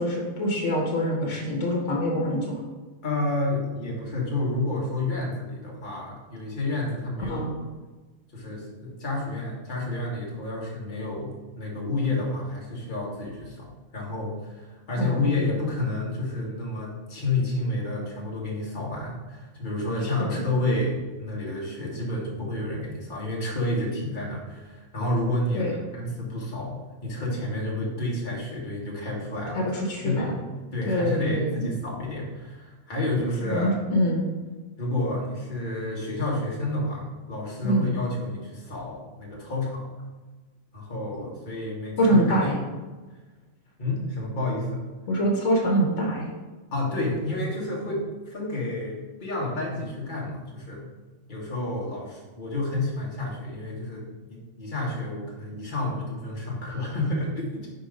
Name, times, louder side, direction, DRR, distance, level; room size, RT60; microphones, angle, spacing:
voice 1, 0.0-2.6 7.3-7.6 15.0-15.6 20.2-20.4 25.5-25.7 29.5-30.3 30.9-31.7 33.5-34.3 37.6-37.9 42.0-42.6 45.1-46.3, equal, 75° left, -1 dB, 1.4 m, -25 dB
voice 2, 3.0-7.5 8.3-29.6 30.0-30.3 30.7-33.7 34.8-39.9 40.7-42.4 43.8-44.8 46.7-50.9 51.3-57.7, left 2 dB, 40° left, -4 dB, 1.6 m, -30 dB
4.6 x 4.5 x 5.1 m, 1.3 s
omnidirectional pair, 1.3 m